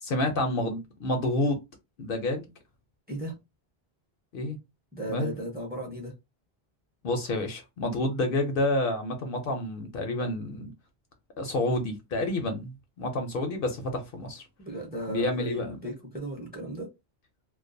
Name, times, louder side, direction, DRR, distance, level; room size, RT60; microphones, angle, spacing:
voice 1, 0.0-1.6 2.0-2.5 4.3-4.6 5.1-5.3 7.0-10.7 11.4-14.4 15.1-15.8, left 1 dB, 65° left, 0.7 m, -29 dB
voice 2, 3.1-3.4 4.9-6.1 14.6-16.9, right 1 dB, 10° right, 0.6 m, -36 dB
2.3 x 2.2 x 2.5 m
omnidirectional pair, 1.1 m